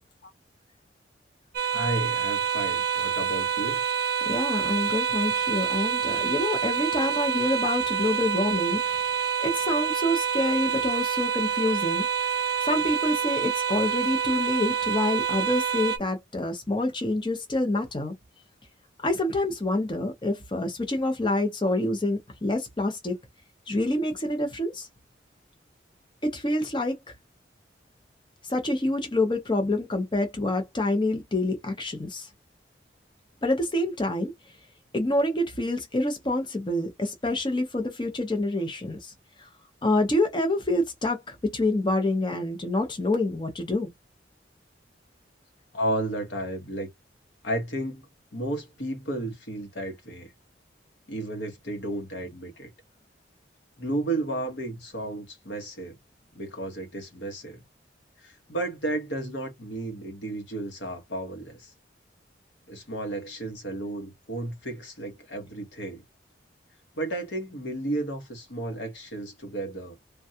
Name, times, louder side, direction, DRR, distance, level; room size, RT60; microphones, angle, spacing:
sound 1, 1.5-16.0, right 7 dB, 55° right, 0.3 m, -27 dB
voice 1, 1.7-3.8 45.7-46.9 47.4-48.0 48.3-50.3 51.1-52.7 53.8-56.0 56.3-57.6 58.2-61.7 62.7-66.0 67.0-70.0, right 1 dB, 70° left, 1.1 m, -33 dB
voice 2, 4.3-12.0 12.6-18.1 19.0-23.1 23.7-24.9 26.2-26.9 28.4-32.3 33.4-34.3 34.9-39.1 39.4-39.5 39.8-43.9, left 1 dB, 25° left, 0.6 m, -27 dB
3.3 x 2.2 x 2.7 m
head